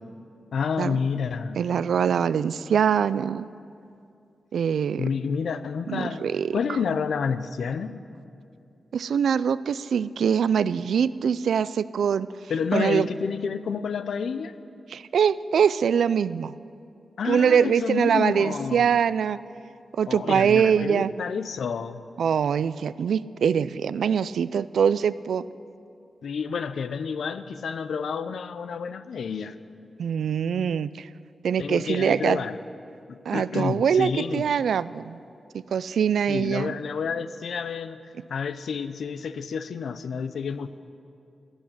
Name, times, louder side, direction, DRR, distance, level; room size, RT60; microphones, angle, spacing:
voice 1, 0.5-1.6 5.0-7.9 12.5-14.5 17.2-18.9 20.1-22.0 26.2-29.6 31.6-32.6 33.1-34.5 36.3-38.0 38.3-40.7, left 6 dB, 80° left, 12 dB, 0.6 m, -29 dB
voice 2, 1.6-3.5 4.5-5.1 5.9-6.6 8.9-12.3 12.7-13.1 14.9-16.6 17.2-19.4 19.9-21.1 22.2-25.4 30.0-31.1 31.4-32.4 33.3-35.2 35.7-36.7, right 7 dB, 90° right, 17 dB, 0.3 m, -23 dB
17.5 x 6.3 x 10.0 m, 2.5 s
wide cardioid pair, 100°, 0 cm